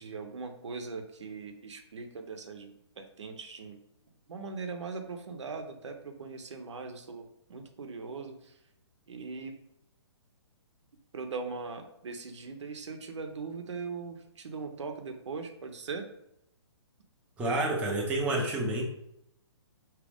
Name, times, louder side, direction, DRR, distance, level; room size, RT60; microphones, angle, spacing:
voice 1, 0.0-3.8 4.3-8.6 9.1-9.6 11.1-16.1, right 4 dB, 85° right, 5 dB, 0.9 m, -40 dB
voice 2, 17.4-18.8, right 2 dB, 10° right, -3 dB, 0.7 m, -29 dB
4.9 x 3.0 x 3.5 m, 0.79 s
hypercardioid pair, 160°, 15 cm